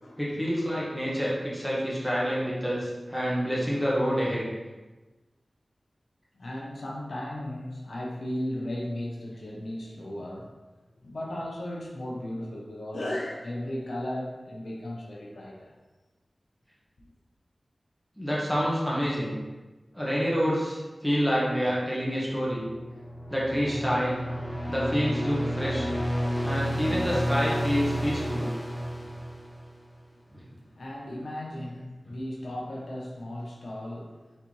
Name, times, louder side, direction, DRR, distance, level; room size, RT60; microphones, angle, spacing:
voice 1, 0.2-4.4 18.2-19.4 19.9-22.7 23.3-24.2 24.7-25.9 26.4-28.5 30.3-30.4, equal, 5° right, -6 dB, 1.4 m, -27 dB
voice 2, 6.4-10.5 11.0-15.8 30.8-34.2, left 1 dB, 80° left, -3 dB, 0.7 m, -35 dB
sound 1, 22.6-29.9, equal, 20° left, 0.4 m, -31 dB
4.1 x 3.4 x 3.1 m, 1.2 s
wide cardioid pair, 50°, 0 cm